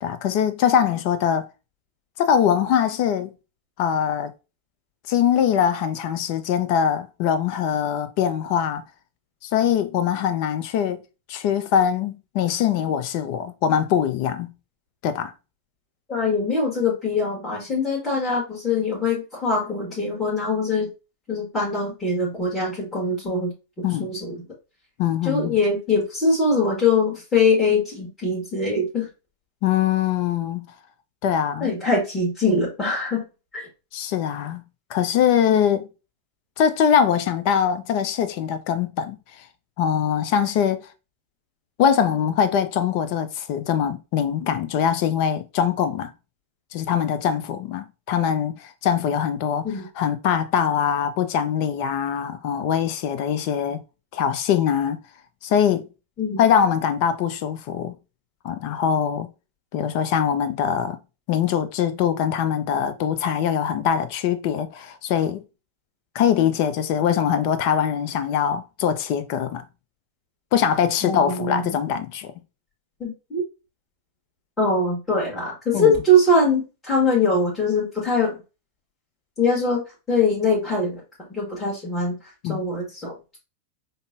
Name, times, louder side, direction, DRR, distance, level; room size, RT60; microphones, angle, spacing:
voice 1, 0.0-1.4 2.2-3.3 3.8-4.3 5.1-8.8 9.4-11.0 11.3-14.5 15.0-15.3 23.8-24.1 25.0-25.6 29.6-30.7 31.2-31.7 33.9-34.6 34.9-35.9 36.6-39.2 39.8-40.8 41.8-46.1 46.7-49.6 50.0-53.8 54.1-55.0 55.4-55.9 56.4-57.9 58.4-59.3 59.7-61.0 61.3-65.4 66.1-69.6 70.5-72.3 75.7-76.0 82.4-82.6, left 8 dB, 45° left, 0.5 m, -22 dB
voice 2, 16.1-20.9 21.3-24.4 25.2-29.1 31.6-33.2 33.5-33.7 49.6-49.8 56.2-56.4 71.0-71.7 73.0-73.4 74.6-78.3 79.4-81.0 81.3-83.1, left 2 dB, 15° left, 1.2 m, -22 dB
5.1 x 2.0 x 2.5 m
figure-of-eight pair, 90°, 0 cm